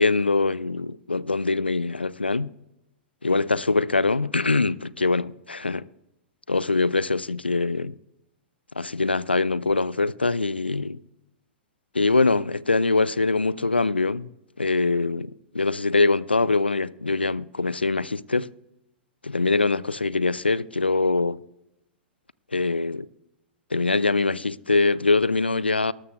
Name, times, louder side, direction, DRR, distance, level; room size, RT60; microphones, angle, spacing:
voice 1, 0.0-2.5 3.2-5.9 6.5-7.9 8.8-11.0 11.9-14.3 14.6-18.5 19.2-21.4 22.5-23.1 23.7-25.9, left 3 dB, 90° left, 0.4 m, -23 dB
19.0 x 13.0 x 2.3 m
figure-of-eight pair, 100°, 5 cm